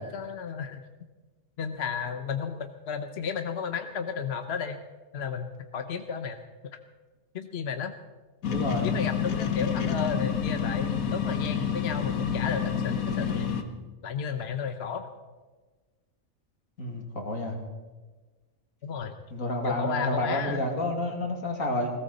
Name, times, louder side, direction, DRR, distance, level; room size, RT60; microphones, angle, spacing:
voice 1, 0.1-0.8 1.6-4.8 5.1-6.4 7.3-7.9 8.8-13.5 14.0-15.1 18.8-19.1 19.6-20.6, left 6 dB, 55° left, 7 dB, 1.1 m, -33 dB
sound 1, 8.4-13.6, left 7 dB, 90° left, 1.6 m, -28 dB
voice 2, 8.5-9.0 16.8-17.6 19.3-21.9, left 1 dB, 75° left, 2 dB, 2.9 m, -30 dB
19.5 x 17.0 x 4.1 m, 1.3 s
omnidirectional pair, 1.4 m